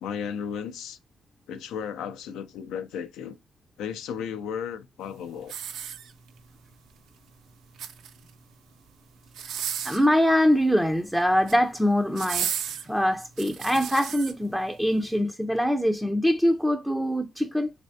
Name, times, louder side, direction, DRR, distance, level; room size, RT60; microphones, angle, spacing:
voice 1, 0.0-1.0 1.5-3.4 3.8-5.5, left 7 dB, 90° left, 0.4 m, -34 dB
sound 1, 5.4-6.5 7.6-8.3 9.3-10.1 11.2-11.6 12.2-14.3 14.9-15.0, right 8 dB, 75° right, 0.5 m, -34 dB
voice 2, 9.8-12.5 12.8-17.7, equal, ahead, 0.4 m, -23 dB
3.4 x 3.2 x 2.7 m
cardioid pair, 90°, 0 cm